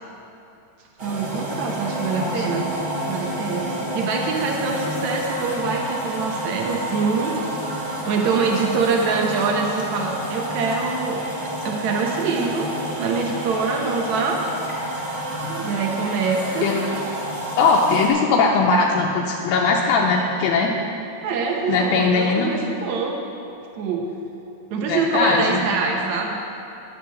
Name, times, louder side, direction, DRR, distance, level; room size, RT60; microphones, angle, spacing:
sound 1, 1.0-18.1, right 1 dB, 30° right, 1.8 m, -29 dB
voice 1, 1.0-2.7 3.0-7.3 8.1-11.2 11.6-12.7 13.0-14.4 15.5-16.7 21.2-23.2 23.7-24.1 24.7-26.3, right 4 dB, 80° right, 1 dB, 1.6 m, -24 dB
voice 2, 17.6-20.7 21.7-22.5 24.9-25.6, left 4 dB, 85° left, -1 dB, 2.4 m, -20 dB
10.5 x 6.6 x 7.3 m, 2.7 s
omnidirectional pair, 4.5 m